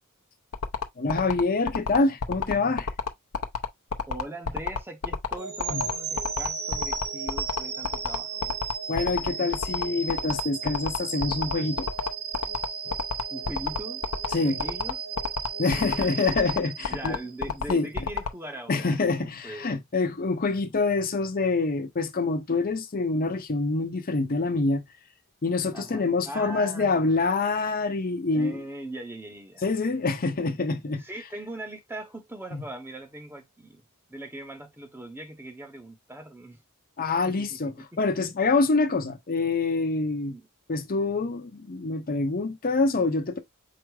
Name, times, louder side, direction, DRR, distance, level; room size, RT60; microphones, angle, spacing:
sound 1, 0.5-18.3, left 5 dB, 75° left, 0.7 m, -29 dB
voice 1, 1.0-2.9 5.7-5.8 8.9-11.9 14.3-14.6 15.6-17.2 17.7-17.9 18.7-24.8 25.4-28.6 29.6-31.0 32.5-32.6 37.0-40.3 40.7-43.4, left 3 dB, 40° left, 0.7 m, -26 dB
voice 2, 4.1-8.6 13.3-14.0 14.4-15.0 15.7-16.2 16.9-19.8 25.7-27.3 28.3-29.6 31.0-33.8 34.1-36.6 37.2-37.8 40.3-40.5, right 1 dB, 10° right, 0.8 m, -40 dB
sound 2, 5.4-17.5, right 6 dB, 45° right, 0.9 m, -35 dB
4.9 x 2.1 x 4.7 m
head